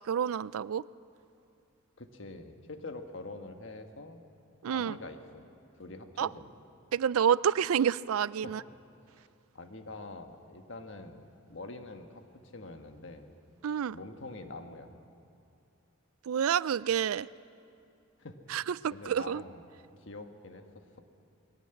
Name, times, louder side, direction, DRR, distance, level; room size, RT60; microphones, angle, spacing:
voice 1, 0.1-0.8 4.6-5.0 6.2-6.3 6.9-8.6 13.6-14.0 16.3-17.3 18.5-19.4, right 8 dB, 90° right, 20 dB, 0.4 m, -28 dB
voice 2, 2.0-4.2 4.7-5.5 5.7-6.5 8.4-8.6 9.5-13.3 13.9-14.9 18.2-18.6 18.9-19.7 19.9-21.0, left 2 dB, 60° left, 6 dB, 1.4 m, -45 dB
21.0 x 17.0 x 7.9 m, 2.5 s
head